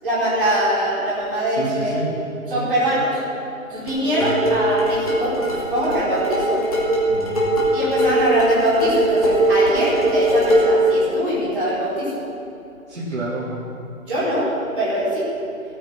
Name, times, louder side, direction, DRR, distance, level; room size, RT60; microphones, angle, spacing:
voice 1, 0.0-1.9 2.5-3.2 3.7-6.6 7.7-12.1 14.1-14.5 14.7-15.3, right 1 dB, 5° right, -17 dB, 1.7 m, -22 dB
voice 2, 1.6-2.1 2.5-2.7 3.7-3.9 4.2-4.3 7.1-7.5 12.9-13.5, right 2 dB, 50° right, -9 dB, 3.1 m, -29 dB
sound 1, 3.9-10.8, right 1 dB, 25° left, 2.2 m, -20 dB
15.5 x 9.1 x 6.0 m, 2.8 s
hypercardioid pair, 175°, 42 cm